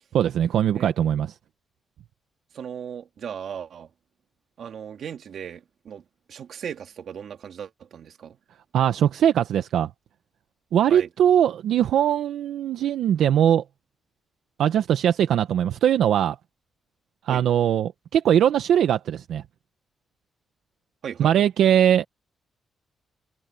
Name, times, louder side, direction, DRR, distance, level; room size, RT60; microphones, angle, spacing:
voice 1, 0.1-1.3 8.7-9.9 10.7-13.6 14.6-16.3 17.3-19.4 21.2-22.0, right 10 dB, 80° right, 0.9 m, -21 dB
voice 2, 2.5-3.9 4.6-6.0 6.3-8.4 10.9-11.1 17.3-17.5 21.0-21.5, right 8 dB, 60° right, 2.7 m, -37 dB
cardioid pair, 145°, 0 cm